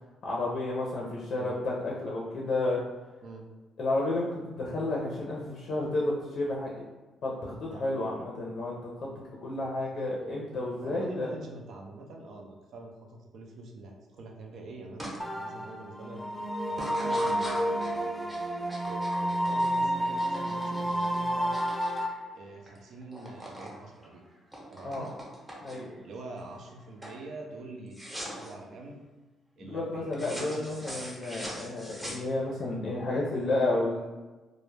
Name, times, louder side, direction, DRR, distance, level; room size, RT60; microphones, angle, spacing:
voice 1, 0.2-2.8 3.8-6.8 7.2-9.1 9.4-11.3 24.8-25.1 25.6-26.0 29.6-34.1, left 2 dB, 60° left, -3 dB, 0.5 m, -31 dB
voice 2, 10.8-21.5 22.4-24.2 24.7-25.1 26.0-28.0 28.3-29.0 29.6-31.2, right 2 dB, 70° right, 1 dB, 0.4 m, -45 dB
sound 1, 15.0-15.2 15.6-16.0 16.7-22.8 23.0-23.7 24.0-26.0 26.5-26.8 27.0-27.2 27.9-28.5 30.1-32.6, equal, 10° right, 0.7 m, -42 dB
sound 2, 15.2-22.1, equal, 5° left, 0.3 m, -30 dB
2.2 x 2.0 x 3.1 m, 1.2 s
cardioid pair, 90°, 0 cm